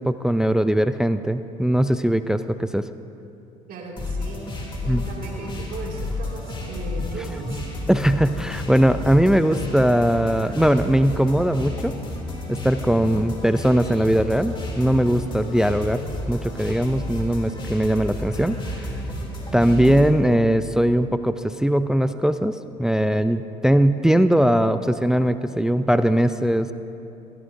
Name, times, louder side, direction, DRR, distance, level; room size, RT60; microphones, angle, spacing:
voice 1, 0.0-2.9 4.9-5.0 7.9-11.9 12.5-16.0 16.3-18.9 19.5-26.7, equal, 5° right, 12 dB, 0.4 m, -20 dB
voice 2, 3.7-4.5 4.8-7.6 19.5-20.0, right 3 dB, 55° right, -1 dB, 2.4 m, -36 dB
sound 1, 4.0-20.1, left 2 dB, 30° left, 2.7 m, -32 dB
17.5 x 13.5 x 2.6 m, 2.7 s
hypercardioid pair, 65°, 17 cm